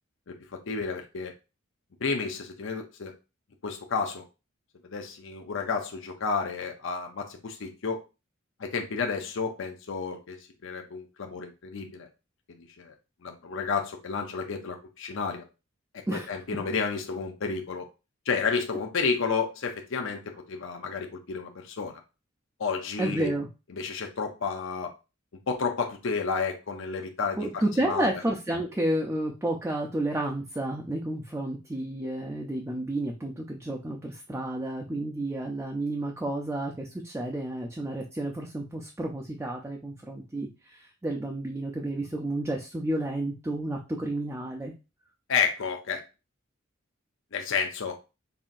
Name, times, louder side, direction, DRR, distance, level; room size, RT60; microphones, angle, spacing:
voice 1, 0.7-1.3 2.0-3.1 3.6-4.2 4.9-8.0 8.6-10.4 10.6-12.1 12.6-12.9 13.2-15.4 15.9-17.8 18.3-20.2 20.5-22.0 22.6-23.3 23.7-24.9 25.5-28.2 45.3-46.0 47.3-48.0, left 5 dB, 60° left, 3 dB, 0.6 m, -31 dB
voice 2, 23.0-23.5 27.4-44.7, right 1 dB, 10° right, 0 dB, 0.4 m, -31 dB
5.5 x 2.6 x 2.5 m, 0.29 s
head